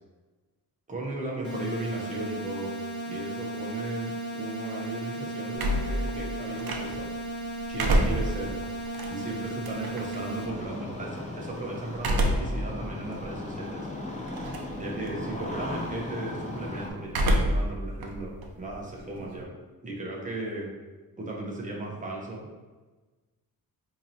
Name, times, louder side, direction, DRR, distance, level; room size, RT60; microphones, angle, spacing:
voice 1, 0.9-2.7 3.1-7.1 7.7-8.6 9.1-13.8 14.7-19.5 19.8-20.7 21.2-22.5, right 2 dB, 20° right, -2 dB, 0.7 m, -36 dB
sound 1, 1.4-10.4, right 2 dB, 40° left, 0.9 m, -35 dB
sound 2, 5.5-7.2 7.6-10.2 12.0-12.6 13.1-13.2 14.3-14.8 15.1-15.5 17.1-17.7 18.0-19.4, right 1 dB, 70° right, 0.6 m, -27 dB
Engine starting, 10.4-16.9, left 1 dB, 20° left, 0.5 m, -37 dB
4.6 x 2.8 x 2.7 m, 1.3 s
wide cardioid pair, 130°, 37 cm